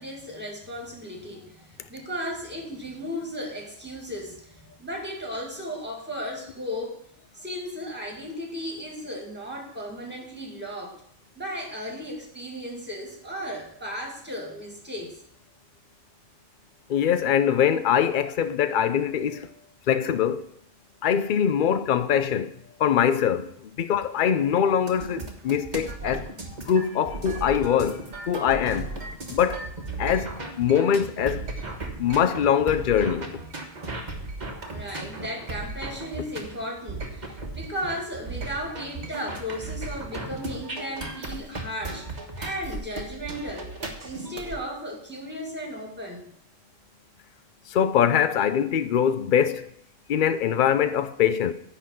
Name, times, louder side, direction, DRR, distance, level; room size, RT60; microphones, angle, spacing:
voice 1, 0.0-7.0 7.3-11.0 11.4-15.2 34.7-42.1 42.4-43.7 44.0-46.3, equal, 10° right, 2.1 m, -35 dB
voice 2, 16.9-19.5 19.9-20.5 21.0-22.5 22.8-26.3 26.7-28.9 29.3-29.7 30.0-31.5 32.0-33.3 47.7-49.7 50.1-51.5, left 8 dB, 55° left, 0.6 m, -23 dB
sound 1, 24.9-44.6, right 2 dB, 35° right, 1.3 m, -36 dB
10.0 x 4.0 x 7.6 m
omnidirectional pair, 1.4 m